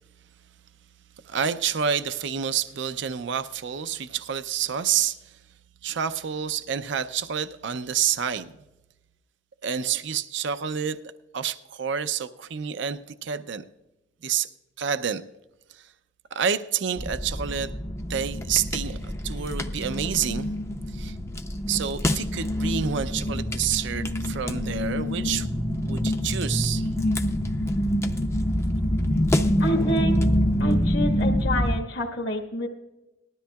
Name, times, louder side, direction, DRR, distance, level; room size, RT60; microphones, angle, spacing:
voice 1, 1.2-5.3 5.8-8.5 9.6-11.0 11.3-13.6 14.2-14.5 14.8-15.2 15.7-15.9 16.3-17.7 18.1-20.5 20.9-21.2 21.7-25.5 25.9-26.9, right 8 dB, 65° right, 11 dB, 0.5 m, -28 dB
sound 1, 17.0-31.8, equal, 15° left, 0.5 m, -26 dB
voice 2, 29.6-30.2 30.6-32.7, equal, 65° left, -2 dB, 1.5 m, -28 dB
19.0 x 13.0 x 2.3 m, 0.99 s
head